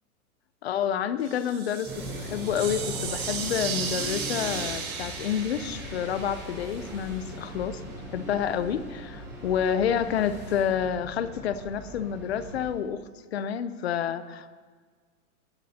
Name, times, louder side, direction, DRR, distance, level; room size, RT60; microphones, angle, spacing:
voice 1, 0.6-7.8 8.1-13.0 13.3-14.6, left 8 dB, 45° left, 14 dB, 0.6 m, -29 dB
sound 1, 1.2-7.1, right 6 dB, 70° right, 3.0 m, -35 dB
sound 2, 1.8-12.7, equal, 5° right, 4.1 m, -40 dB
19.0 x 10.5 x 2.9 m, 1.6 s
hypercardioid pair, 170°, 45 cm